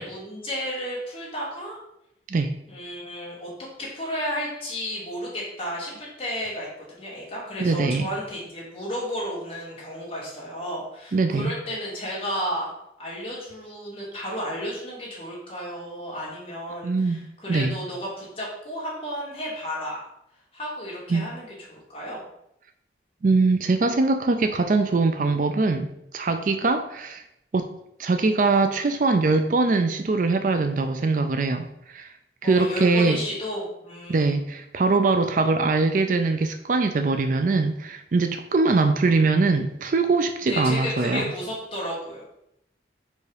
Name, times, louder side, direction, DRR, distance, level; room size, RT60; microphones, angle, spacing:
voice 1, 0.0-1.8 2.7-3.5 3.8-12.7 13.0-20.0 20.5-22.2 32.4-34.3 40.4-42.4, equal, 30° left, -6 dB, 2.5 m, -33 dB
voice 2, 7.6-8.1 11.1-11.5 16.8-17.8 21.1-21.3 23.2-27.2 27.5-27.7 28.0-32.1 32.4-33.2 34.1-41.2, right 3 dB, 45° right, 8 dB, 0.4 m, -22 dB
4.8 x 4.6 x 5.0 m, 0.80 s
head